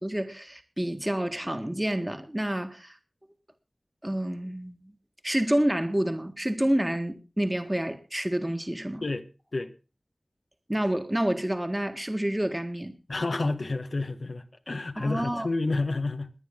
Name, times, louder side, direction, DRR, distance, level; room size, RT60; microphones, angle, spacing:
voice 1, 0.0-3.0 4.0-4.9 5.2-9.0 10.7-12.9 15.0-15.5, right 1 dB, 15° right, 1.7 m, -28 dB
voice 2, 13.1-16.3, left 2 dB, 65° left, 1.2 m, -29 dB
22.0 x 9.4 x 3.7 m
wide cardioid pair, 50°, 0 cm